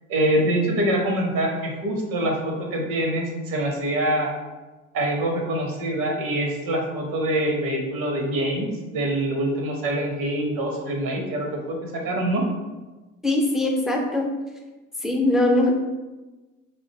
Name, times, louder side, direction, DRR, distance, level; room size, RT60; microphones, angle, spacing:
voice 1, 0.1-4.3 4.9-12.4, right 1 dB, 60° right, 0 dB, 0.7 m, -25 dB
voice 2, 13.2-14.3 15.0-15.7, left 1 dB, ahead, 0 dB, 0.3 m, -21 dB
2.4 x 2.1 x 2.7 m, 1.2 s
hypercardioid pair, 55°, 39 cm